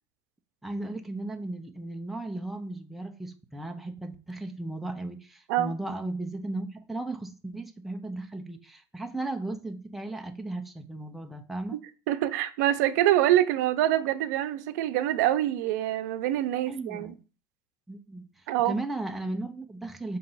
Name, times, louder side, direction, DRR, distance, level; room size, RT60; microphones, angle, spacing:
voice 1, 0.6-11.8 16.7-17.2 17.9-18.3 18.6-20.2, right 2 dB, ahead, 0.5 m, -36 dB
voice 2, 12.1-17.1 18.5-18.7, right 13 dB, 90° right, 0.6 m, -25 dB
6.4 x 2.9 x 5.4 m
cardioid pair, 165°, 9 cm